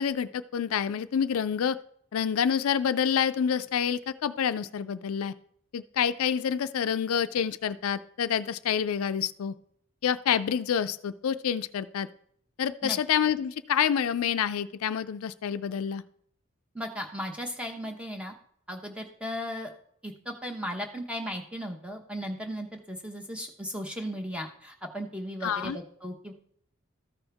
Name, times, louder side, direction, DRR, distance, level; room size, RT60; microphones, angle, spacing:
voice 1, 0.0-1.8 2.1-5.3 5.7-9.5 10.0-12.1 12.6-16.0 25.4-25.8, left 8 dB, 80° left, 12 dB, 0.4 m, -28 dB
voice 2, 16.7-18.3 18.7-19.7 20.0-26.3, equal, 5° right, 3 dB, 0.9 m, -36 dB
13.5 x 5.4 x 3.4 m, 0.65 s
head